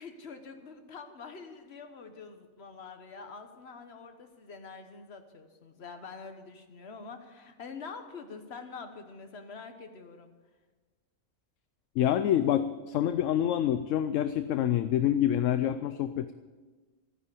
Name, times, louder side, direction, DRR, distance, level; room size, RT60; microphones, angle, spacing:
voice 1, 0.0-10.3, left 4 dB, 50° left, 6 dB, 1.4 m, -45 dB
voice 2, 12.0-16.3, left 11 dB, 70° left, 11 dB, 0.9 m, -27 dB
14.0 x 10.5 x 6.9 m, 1.3 s
omnidirectional pair, 1.4 m